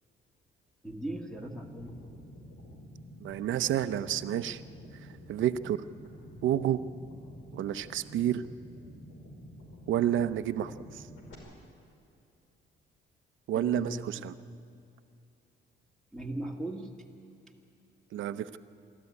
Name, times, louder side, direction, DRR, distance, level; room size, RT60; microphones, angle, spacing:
voice 1, 0.8-2.0 13.5-14.0 16.1-16.9, right 1 dB, 5° left, -2 dB, 1.9 m, -37 dB
sound 1, 1.3-11.3, equal, 75° left, 5.3 m, -49 dB
voice 2, 3.2-4.6 4.9-5.8 6.4-6.8 7.5-8.5 9.9-11.1 13.5-14.3 18.1-18.6, right 11 dB, 75° right, 12 dB, 0.8 m, -30 dB
23.5 x 14.0 x 9.7 m, 2.5 s
cardioid pair, 90°, 20 cm